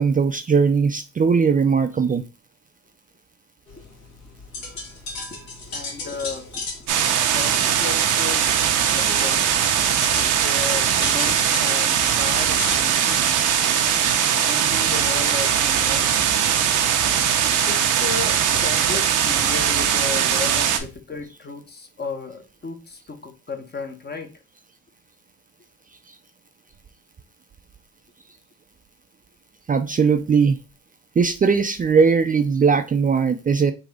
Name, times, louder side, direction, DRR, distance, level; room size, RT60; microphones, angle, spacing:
voice 1, 0.0-2.2 29.7-30.6 31.2-33.7, right 5 dB, 30° right, 0.4 m, -19 dB
sound 1, 3.7-15.4, left 3 dB, 75° left, 1.8 m, -37 dB
voice 2, 5.7-6.6 7.3-8.6 8.9-9.7 10.3-13.4 14.3-16.3 17.7-24.3, left 4 dB, 35° left, 0.9 m, -34 dB
sound 2, 6.9-20.8, right 8 dB, 90° right, 0.8 m, -20 dB
3.8 x 2.9 x 4.7 m
cardioid pair, 90°, 30 cm